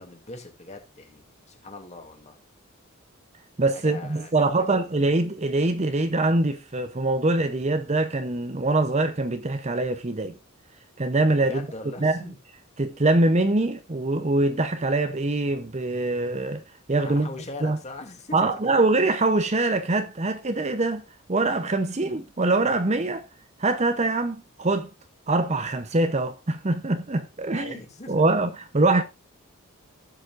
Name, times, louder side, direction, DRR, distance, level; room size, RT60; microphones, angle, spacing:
voice 1, 0.0-2.4 3.7-4.3 4.6-4.8 11.4-12.4 17.0-18.7 27.5-28.3, left 2 dB, 30° left, 2.6 m, -41 dB
voice 2, 3.6-10.4 11.0-11.7 12.0-12.2 12.8-16.6 16.9-17.3 17.6-17.8 18.3-21.0 21.3-23.3 23.6-24.9 25.3-27.8 28.1-29.0, right 2 dB, 30° right, 0.8 m, -23 dB
16.0 x 7.2 x 2.5 m
head